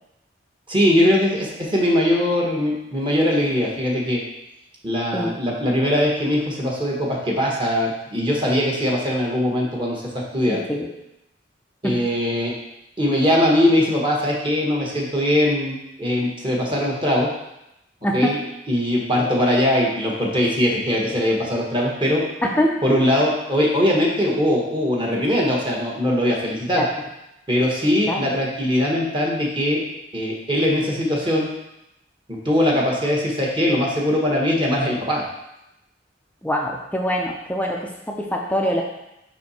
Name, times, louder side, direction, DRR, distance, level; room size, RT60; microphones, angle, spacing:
voice 1, 0.7-4.2 4.8-10.0 10.3-10.6 11.8-12.5 13.0-17.3 18.0-18.4 18.7-22.2 22.8-26.8 27.5-29.8 30.1-31.5 32.3-35.2, left 1 dB, 25° right, -3 dB, 1.2 m, -21 dB
voice 2, 10.5-10.9 11.8-12.1 18.0-18.4 22.4-22.8 26.7-26.9 28.1-28.2 36.4-38.8, equal, 10° left, 0 dB, 0.5 m, -24 dB
5.6 x 4.4 x 4.2 m, 0.88 s
head